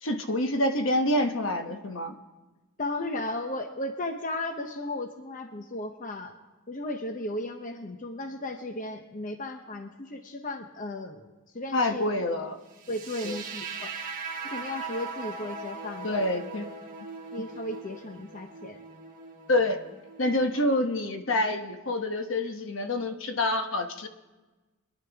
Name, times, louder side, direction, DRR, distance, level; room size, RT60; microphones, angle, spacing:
voice 1, 0.0-2.1 11.7-12.6 13.2-13.4 16.0-16.7 19.5-19.8 20.2-24.1, left 1 dB, 65° left, 6 dB, 1.1 m, -27 dB
voice 2, 2.8-6.3 6.7-12.1 12.9-13.9 14.4-16.2 17.3-18.8, left 1 dB, 40° left, 5 dB, 0.9 m, -35 dB
sound 1, 12.8-20.8, right 4 dB, 40° right, 1.2 m, -40 dB
25.0 x 10.5 x 3.5 m, 1.2 s
head